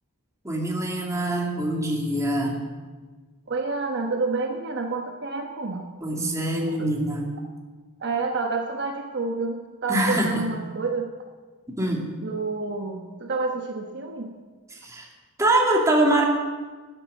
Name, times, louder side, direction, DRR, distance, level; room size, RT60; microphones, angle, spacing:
voice 1, 0.4-2.6 6.0-7.3 9.9-10.4 11.8-12.1 14.7-15.1 15.4-16.2, right 1 dB, 15° right, -1 dB, 2.4 m, -24 dB
voice 2, 3.5-5.9 6.7-6.9 8.0-11.1 12.2-14.3, right 3 dB, 50° right, 3 dB, 1.1 m, -29 dB
12.5 x 8.9 x 9.6 m, 1.4 s
head